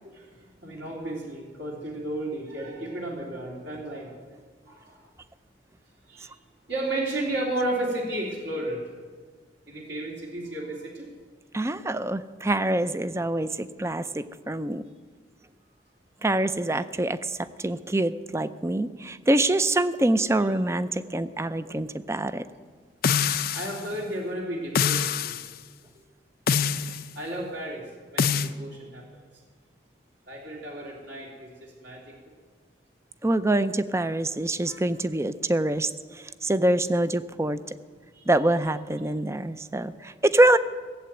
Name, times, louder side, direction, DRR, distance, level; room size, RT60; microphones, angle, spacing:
voice 1, 0.6-4.2 4.7-5.1 6.1-6.3 6.7-8.8 9.7-11.1 23.5-25.4 27.1-27.8 28.1-29.0 30.3-32.0 34.6-34.8 38.1-38.2, right 1 dB, 70° right, -3 dB, 3.2 m, -33 dB
voice 2, 11.5-14.8 16.2-22.4 33.2-37.6 38.3-40.6, right 1 dB, 15° right, 13 dB, 0.5 m, -25 dB
sound 1, 23.0-23.8 24.7-25.5 26.5-27.0 28.2-28.5, left 7 dB, 55° left, 0.6 m, -24 dB
17.5 x 7.8 x 9.0 m, 1.5 s
head